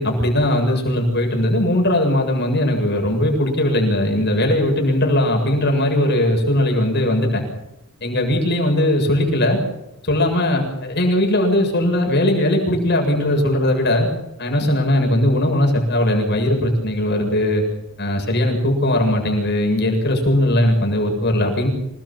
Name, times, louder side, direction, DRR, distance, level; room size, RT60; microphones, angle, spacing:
voice 1, 0.0-7.4 8.0-9.6 10.0-14.1 14.4-17.6 18.0-21.7, left 1 dB, 50° left, 2 dB, 7.7 m, -19 dB
27.5 x 20.0 x 7.6 m, 0.87 s
head